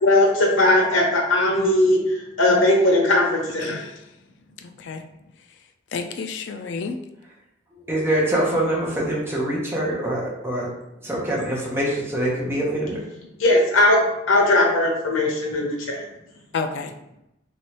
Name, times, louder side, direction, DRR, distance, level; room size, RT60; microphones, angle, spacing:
voice 1, 0.0-3.8 13.4-16.0, left 1 dB, 90° left, 0 dB, 0.9 m, -19 dB
voice 2, 3.6-4.0 4.6-5.0 5.9-7.0 16.5-16.9, left 4 dB, 60° left, 6 dB, 0.3 m, -30 dB
voice 3, 7.7-10.7 11.0-13.0, right 1 dB, 10° right, -4 dB, 0.8 m, -24 dB
3.1 x 3.0 x 2.9 m, 0.87 s
head